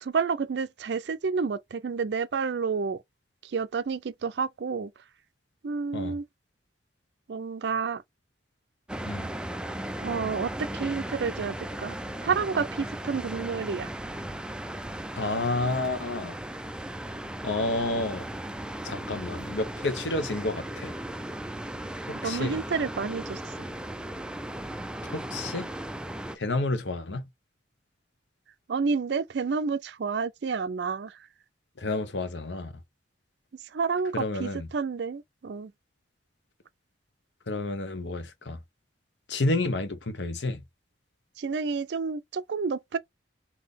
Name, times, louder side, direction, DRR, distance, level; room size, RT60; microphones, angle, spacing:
voice 1, 0.0-3.0 3.4-4.9 5.6-6.3 7.3-8.0 10.0-13.9 22.2-23.5 28.7-31.2 33.6-35.7 41.4-43.0, right 5 dB, 70° right, 0.4 m, -30 dB
sound 1, 8.9-26.4, right 1 dB, 5° right, 0.3 m, -36 dB
voice 2, 15.1-16.4 17.4-18.2 18.8-20.9 22.1-22.6 25.1-25.7 26.3-27.2 31.8-32.7 34.1-34.7 37.5-38.6 39.3-40.6, left 2 dB, 80° left, 0.9 m, -30 dB
4.0 x 2.8 x 3.5 m
head